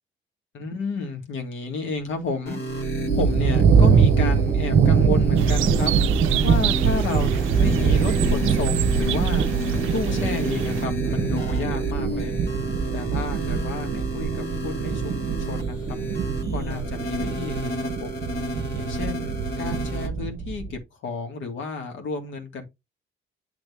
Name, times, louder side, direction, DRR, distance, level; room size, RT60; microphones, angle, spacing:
voice 1, 0.5-2.9 3.1-5.9 6.4-9.5 9.9-12.4 12.9-16.0 16.5-18.3 18.7-22.6, left 4 dB, 75° left, 2.0 m, -31 dB
sound 1, 2.5-20.1, right 1 dB, 55° left, 2.1 m, -31 dB
sound 2, 2.7-20.8, right 6 dB, 55° right, 0.9 m, -23 dB
sound 3, 5.4-10.8, right 15 dB, 85° right, 0.4 m, -32 dB
8.5 x 3.4 x 3.5 m
cardioid pair, 90°, 20 cm